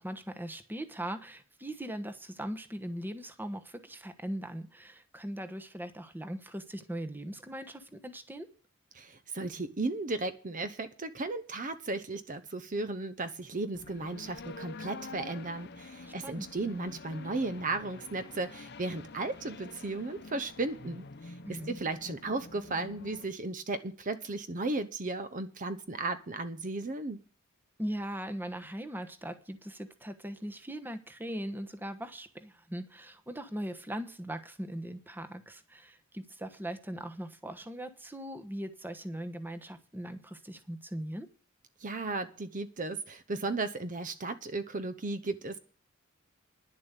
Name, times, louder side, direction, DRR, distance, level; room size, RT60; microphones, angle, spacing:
voice 1, 0.0-8.5 16.2-16.5 21.4-21.8 27.8-41.3, right 1 dB, 10° right, 8 dB, 1.1 m, -40 dB
voice 2, 8.9-27.2 41.8-45.6, right 3 dB, 40° right, 11 dB, 0.8 m, -35 dB
sound 1, 13.7-23.3, left 3 dB, 55° left, 0.8 m, -47 dB
10.5 x 7.3 x 8.2 m, 0.38 s
head